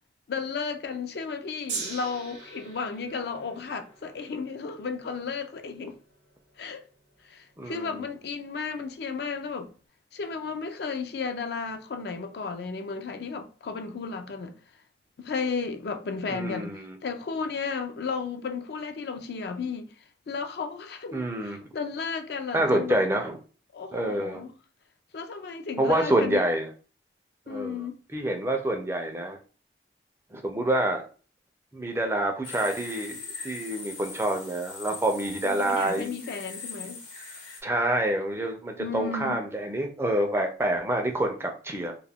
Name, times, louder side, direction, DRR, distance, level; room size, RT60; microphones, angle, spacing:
voice 1, 0.3-5.9 6.6-6.8 7.3-9.7 10.1-14.6 15.2-16.7 17.0-19.9 20.3-23.0 23.7-24.5 25.1-26.4 27.5-28.0 35.4-37.0 38.8-39.4, left 5 dB, 60° left, 0.4 m, -33 dB
Gong, 1.7-8.0 8.8-8.9, right 4 dB, 70° right, 0.7 m, -42 dB
voice 2, 7.6-8.0 16.3-17.0 21.1-21.6 22.5-23.4 23.9-24.4 25.8-26.7 27.5-27.9 28.1-29.4 30.3-31.0 31.7-36.1 37.6-41.9, right 1 dB, 15° right, 0.3 m, -27 dB
sound 1, 32.4-37.6, left 4 dB, 85° left, 0.9 m, -41 dB
2.3 x 2.1 x 3.4 m
head